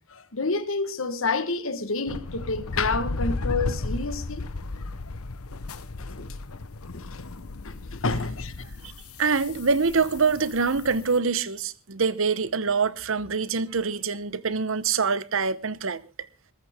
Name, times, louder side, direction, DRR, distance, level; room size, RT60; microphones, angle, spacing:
voice 1, 0.1-4.4 6.0-6.3 6.9-7.1 7.6-8.7, left 3 dB, 65° left, 1.4 m, -29 dB
sound 1, 2.1-11.2, left 3 dB, 80° left, 0.9 m, -35 dB
voice 2, 9.2-16.0, right 5 dB, 60° right, 0.9 m, -25 dB
21.0 x 13.5 x 3.6 m
head